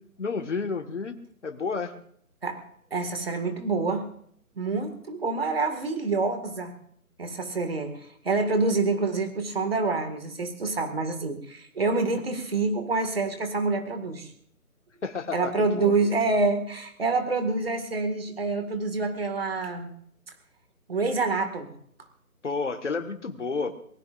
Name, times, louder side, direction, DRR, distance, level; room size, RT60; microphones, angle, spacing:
voice 1, 0.2-1.2 1.4-1.9 15.0-15.9 22.4-23.8, left 4 dB, 50° left, 5 dB, 1.7 m, -31 dB
voice 2, 2.9-4.1 4.6-6.7 7.2-14.3 15.3-19.9 20.9-21.7, right 3 dB, 40° right, 7 dB, 2.1 m, -27 dB
28.0 x 19.5 x 2.6 m, 0.65 s
hypercardioid pair, 175°, 44 cm